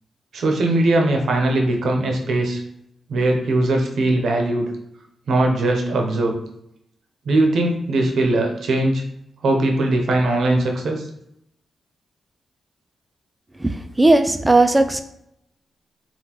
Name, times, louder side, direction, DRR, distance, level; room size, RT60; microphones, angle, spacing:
voice 1, 0.3-2.6 3.1-4.7 5.3-6.4 7.3-9.0 9.4-11.0, right 2 dB, 80° right, 2 dB, 0.6 m, -20 dB
voice 2, 13.6-15.0, right 2 dB, 15° right, 9 dB, 0.3 m, -16 dB
3.7 x 2.2 x 2.9 m, 0.78 s
cardioid pair, 80°, 0 cm